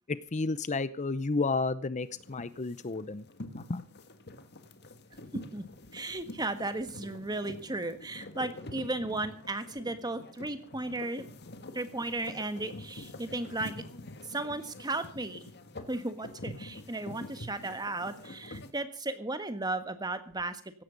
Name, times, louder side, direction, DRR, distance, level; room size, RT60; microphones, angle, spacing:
voice 1, 0.1-3.2 3.6-3.8, left 3 dB, 35° left, 15 dB, 0.7 m, -32 dB
sound 1, 2.0-18.7, left 2 dB, 50° left, 1.8 m, -46 dB
voice 2, 5.3-5.6 5.9-11.2 11.7-13.7 14.3-15.5 15.9-20.8, right 2 dB, 20° right, 10 dB, 1.5 m, -35 dB
16.5 x 13.0 x 5.2 m, 0.40 s
head